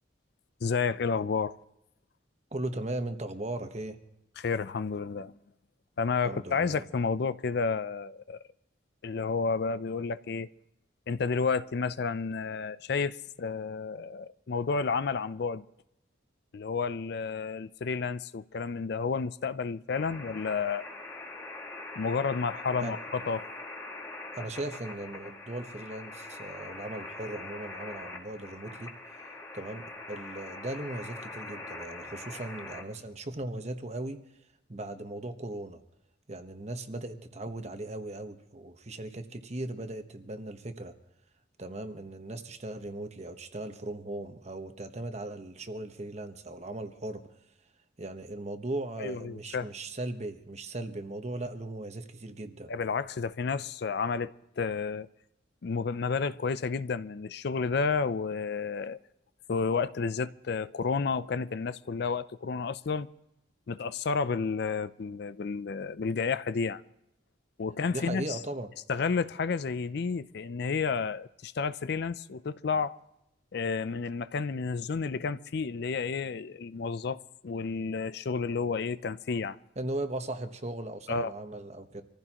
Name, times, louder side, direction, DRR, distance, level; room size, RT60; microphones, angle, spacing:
voice 1, 0.6-1.5 4.4-5.3 6.0-8.4 9.0-10.5 11.1-15.6 16.5-20.9 22.0-23.4 49.0-49.7 52.7-55.1 55.6-59.0 59.5-63.1 63.7-66.8 67.6-68.4 68.9-73.0 73.5-79.6 81.1-81.3, left 5 dB, 55° left, 0.4 m, -31 dB
voice 2, 2.5-4.0 6.2-6.8 22.8-23.0 24.3-28.9 29.5-34.2 34.7-35.8 36.3-40.9 41.6-47.2 48.0-52.7 67.9-68.7 79.8-82.0, right 2 dB, 35° right, 1.1 m, -38 dB
sound 1, 19.9-32.8, left 2 dB, 15° left, 1.9 m, -43 dB
25.5 x 15.0 x 2.9 m
head